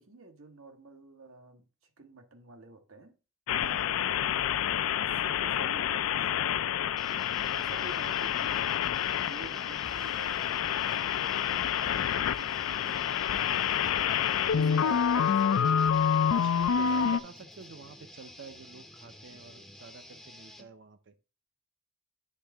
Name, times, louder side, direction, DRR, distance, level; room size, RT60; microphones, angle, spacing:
voice 1, 0.0-1.7 2.0-3.1 4.9-6.7 7.5-8.7 9.1-13.7 14.5-15.6, right 2 dB, 75° right, 1.0 m, -50 dB
sound 1, 3.5-17.2, left 8 dB, 85° left, 0.4 m, -28 dB
voice 2, 3.6-3.9 14.5-15.4 16.3-21.1, right 4 dB, 60° right, 0.6 m, -48 dB
sound 2, 7.0-20.7, left 1 dB, ahead, 0.5 m, -51 dB
sound 3, 9.9-13.1 13.4-13.5 13.8-14.4 14.9-15.4 15.9-17.6, right 1 dB, 40° right, 0.9 m, -53 dB
9.8 x 3.6 x 3.4 m
head